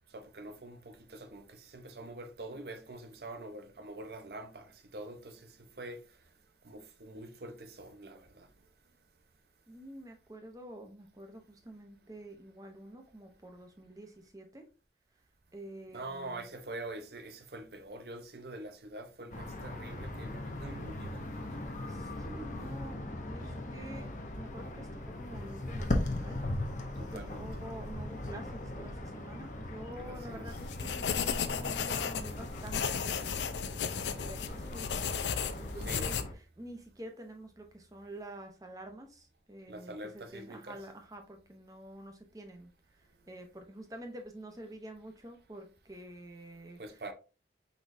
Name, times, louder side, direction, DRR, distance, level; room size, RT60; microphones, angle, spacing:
voice 1, 0.1-6.0 6.6-8.5 15.9-21.2 27.0-27.5 30.0-30.5 35.8-36.1 39.7-40.8 46.8-47.1, right 2 dB, 65° right, 0.7 m, -45 dB
voice 2, 9.7-14.6 15.5-16.5 21.9-24.1 24.3-26.4 26.6-26.8 27.1-46.8, right 1 dB, 20° right, 0.8 m, -48 dB
sound 1, 19.3-36.3, left 1 dB, 45° left, 0.8 m, -39 dB
sound 2, 30.5-36.2, left 7 dB, 85° left, 0.5 m, -34 dB
4.6 x 4.1 x 2.6 m
head